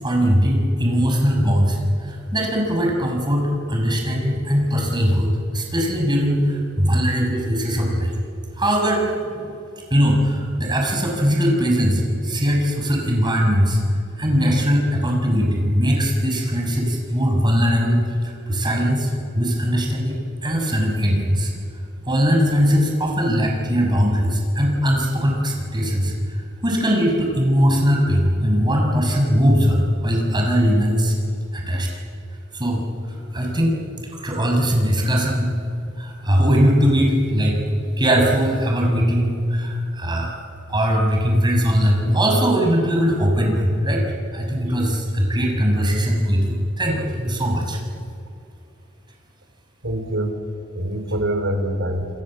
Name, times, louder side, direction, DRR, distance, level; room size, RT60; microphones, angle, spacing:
voice 1, 0.0-8.1 8.6-9.6 9.9-13.8 14.2-20.2 20.4-21.5 22.1-31.1 31.5-31.9 32.5-33.8 34.2-35.6 36.0-37.6 38.0-40.4 40.7-44.1 44.3-47.8, equal, 25° right, 1 dB, 6.3 m, -20 dB
voice 2, 49.8-52.1, right 1 dB, 75° right, 6 dB, 4.0 m, -25 dB
27.5 x 26.5 x 7.7 m, 2.5 s
head